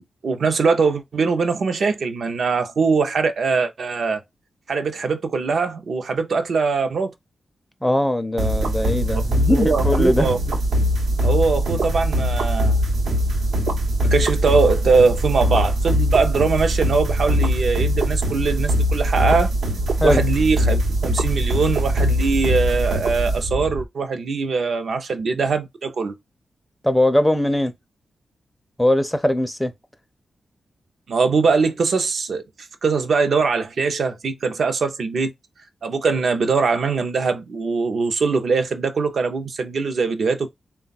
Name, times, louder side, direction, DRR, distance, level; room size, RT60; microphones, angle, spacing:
voice 1, 0.2-4.2 4.7-7.1 9.4-10.6 11.2-12.8 14.1-19.5 20.0-26.2 31.1-32.4 32.8-35.3 35.8-40.5, right 4 dB, 60° right, 0.6 m, -21 dB
voice 2, 7.8-10.3 20.0-20.2 26.8-27.7 28.8-29.7, left 1 dB, 5° left, 0.5 m, -20 dB
sound 1, 8.4-23.8, equal, 90° right, 1.0 m, -21 dB
3.9 x 2.3 x 4.0 m
wide cardioid pair, 145°, 0 cm